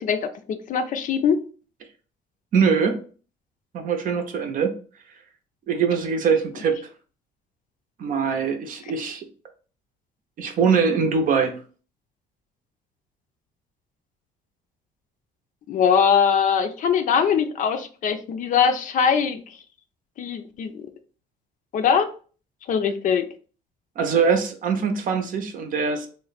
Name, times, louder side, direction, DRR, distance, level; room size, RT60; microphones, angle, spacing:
voice 1, 0.0-1.4 15.7-19.4 20.2-20.9 21.7-22.1 22.7-23.3, left 7 dB, 50° left, 9 dB, 0.5 m, -21 dB
voice 2, 2.5-3.0 3.7-4.8 5.7-6.8 8.0-9.3 10.4-11.6 24.0-26.1, right 6 dB, 55° right, 5 dB, 0.7 m, -22 dB
3.1 x 2.1 x 4.0 m, 0.39 s
cardioid pair, 110°, 17 cm